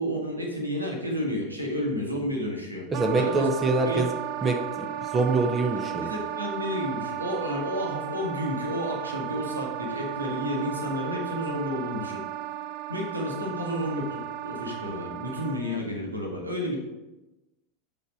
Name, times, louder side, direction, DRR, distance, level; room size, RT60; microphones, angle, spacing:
voice 1, 0.0-2.9 3.1-3.5 3.9-4.0 6.0-12.4 12.9-16.8, equal, 90° right, 0 dB, 1.8 m, -31 dB
voice 2, 2.9-4.1 4.4-4.9 5.1-6.1, right 3 dB, 25° right, 4 dB, 1.0 m, -24 dB
Wind instrument woodwind instrument, 2.9-15.8, right 11 dB, 50° right, 0.4 m, -35 dB
8.4 x 4.9 x 5.2 m, 1.0 s
figure-of-eight pair, 80°, 0 cm